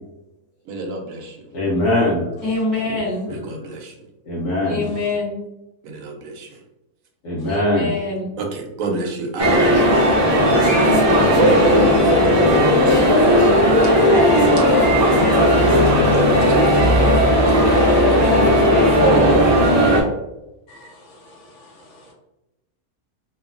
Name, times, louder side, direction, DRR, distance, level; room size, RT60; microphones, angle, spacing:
voice 1, 0.7-1.4 3.3-3.9 5.8-6.6 8.4-9.8 11.1-12.0 16.3-18.2 19.0-19.5, right 3 dB, 70° right, 2 dB, 0.9 m, -26 dB
voice 2, 1.5-2.3 2.8-3.0 3.3-3.5 4.2-4.8 7.2-7.9, left 1 dB, 75° left, -6 dB, 1.2 m, -21 dB
voice 3, 2.4-3.3 4.7-5.4 7.4-8.3, left 3 dB, 10° right, -9 dB, 1.4 m, -25 dB
sound 1, 9.4-20.0, equal, 30° right, 0.4 m, -15 dB
voice 4, 13.6-15.4 20.7-21.6, right 4 dB, 60° left, -2 dB, 0.9 m, -35 dB
2.9 x 2.3 x 2.4 m, 0.94 s
omnidirectional pair, 1.6 m